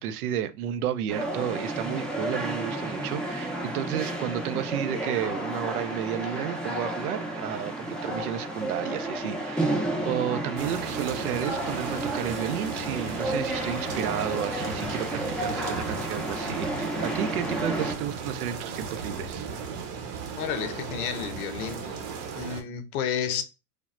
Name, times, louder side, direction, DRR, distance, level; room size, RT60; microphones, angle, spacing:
voice 1, 0.0-19.5 22.4-22.5, right 10 dB, 75° right, 0.5 m, -32 dB
sound 1, 1.1-17.9, right 1 dB, ahead, 0.5 m, -32 dB
sound 2, 10.6-22.6, right 5 dB, 45° right, 0.8 m, -36 dB
voice 2, 20.4-22.0 22.3-23.4, left 8 dB, 75° left, 0.6 m, -31 dB
3.3 x 2.0 x 2.4 m
hypercardioid pair, 90°, 45 cm